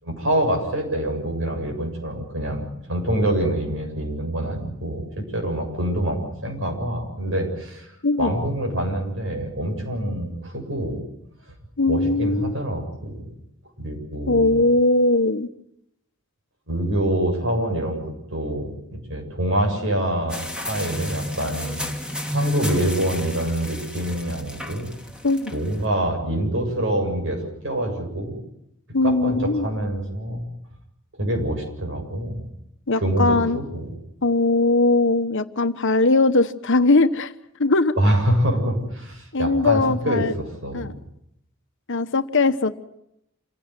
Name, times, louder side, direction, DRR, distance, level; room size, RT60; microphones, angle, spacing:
voice 1, 0.0-7.9 8.2-11.0 11.9-13.3 13.8-14.6 16.7-21.8 22.3-24.9 25.5-28.4 29.0-30.4 31.2-32.4 33.0-33.9 38.0-40.9, right 1 dB, 65° right, 3 dB, 7.3 m, -25 dB
voice 2, 8.0-8.3 11.8-12.6 14.3-15.5 25.2-25.5 28.9-29.7 32.9-33.6 34.2-37.3 37.6-37.9 39.3-40.3 40.7-40.9 41.9-42.8, left 2 dB, 60° left, 10 dB, 1.2 m, -20 dB
sound 1, 20.3-25.8, equal, 5° right, 2.7 m, -31 dB
27.5 x 16.5 x 9.4 m, 0.79 s
head